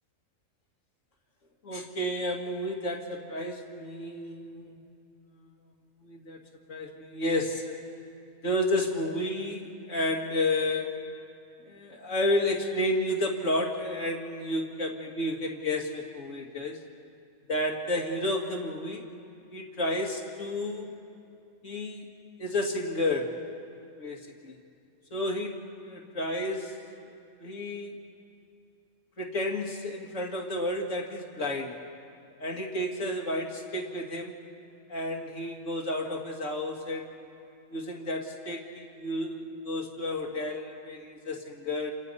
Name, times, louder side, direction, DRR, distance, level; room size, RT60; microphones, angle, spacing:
voice 1, 1.6-4.8 6.0-7.8 8.4-11.1 11.7-16.8 17.5-19.0 19.5-20.9 21.6-22.1 22.4-23.5 24.0-24.6 25.1-26.8 27.4-28.0 29.2-31.8 32.4-34.4 34.9-37.2 37.7-41.9, left 1 dB, 65° left, 0 dB, 2.4 m, -31 dB
29.0 x 27.5 x 5.5 m, 2.5 s
omnidirectional pair, 1.4 m